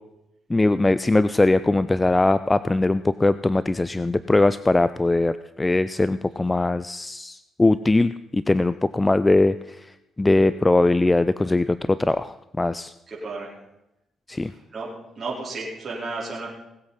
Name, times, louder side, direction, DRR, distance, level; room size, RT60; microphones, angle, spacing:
voice 1, 0.5-9.6 10.2-12.9 14.3-14.5, left 2 dB, 15° left, 14 dB, 0.4 m, -21 dB
voice 2, 13.1-13.5 14.4-14.9 15.1-16.5, right 3 dB, 40° right, -6 dB, 4.3 m, -33 dB
19.0 x 8.2 x 5.7 m, 0.89 s
cardioid pair, 90°, 0 cm